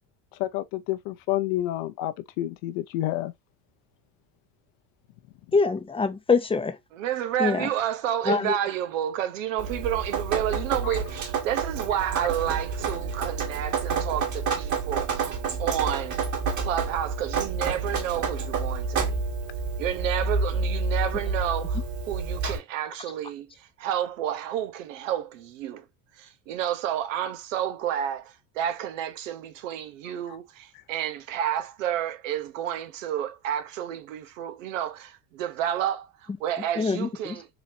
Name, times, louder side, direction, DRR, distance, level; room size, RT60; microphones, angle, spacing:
voice 1, 0.4-3.3, left 15 dB, 65° left, 0.7 m, -29 dB
voice 2, 5.5-6.8 7.4-7.7 8.3-8.5 36.8-37.1, left 4 dB, 15° left, 0.6 m, -24 dB
voice 3, 6.9-16.2 16.6-19.2 19.8-25.8 26.2-37.5, right 10 dB, 85° right, 1.0 m, -30 dB
Drip, 9.6-22.6, right 4 dB, 50° right, 2.3 m, -29 dB
4.1 x 3.0 x 2.7 m
hypercardioid pair, 85°, 37 cm